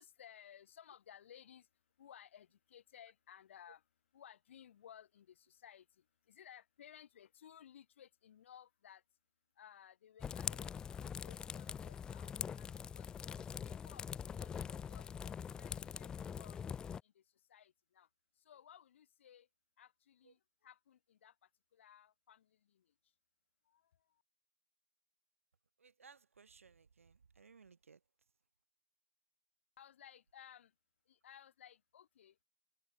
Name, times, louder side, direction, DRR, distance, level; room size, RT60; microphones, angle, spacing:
voice 1, 0.0-9.0 9.5-18.1 18.3-19.5 19.8-23.1 23.6-24.2 29.8-30.7 31.1-32.4, left 9 dB, 65° left, 2.3 m, -60 dB
sound 1, 10.2-17.0, left 7 dB, 10° left, 0.3 m, -43 dB
voice 2, 25.8-28.0, right 5 dB, 85° right, 2.6 m, -62 dB
open air
hypercardioid pair, 135°, 7 cm